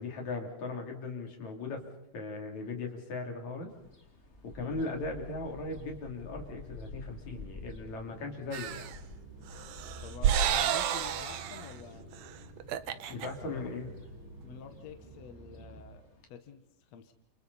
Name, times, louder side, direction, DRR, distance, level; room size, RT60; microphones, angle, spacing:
voice 1, 0.0-1.8 2.1-3.7 4.4-8.9 13.1-13.9, left 3 dB, 50° left, 2 dB, 4.2 m, -38 dB
sound 1, 3.7-16.3, left 2 dB, 20° left, 2.3 m, -52 dB
sound 2, 4.9-15.8, right 2 dB, 50° right, 9.4 m, -51 dB
sound 3, 8.5-9.0 9.5-11.7 12.1-12.3 12.6-13.3, right 9 dB, 85° right, 1.5 m, -30 dB
voice 2, 10.0-12.1 13.4-13.7 14.4-16.6 16.9-17.1, left 7 dB, 65° left, 7 dB, 1.8 m, -48 dB
29.5 x 29.0 x 4.2 m, 0.76 s
omnidirectional pair, 4.6 m